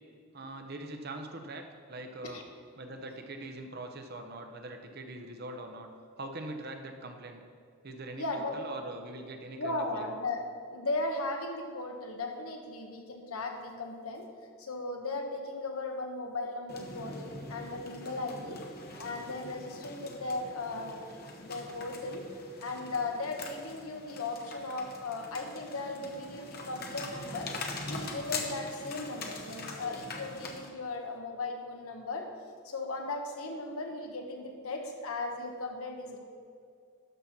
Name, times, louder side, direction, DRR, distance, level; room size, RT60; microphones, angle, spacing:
voice 1, 0.3-1.6 1.9-2.4 2.8-5.9 6.2-7.4 7.8-10.1 18.4-18.6, right 2 dB, 45° right, 5 dB, 0.8 m, -42 dB
voice 2, 8.2-8.6 9.6-14.2 14.6-17.2 17.5-18.6 19.0-21.0 21.3-22.2 22.6-27.5 27.8-32.3 32.6-36.2, left 2 dB, 75° left, 3 dB, 1.2 m, -37 dB
sound 1, 16.7-30.7, left 3 dB, 45° left, 0.9 m, -43 dB
12.5 x 4.3 x 6.0 m, 2.3 s
head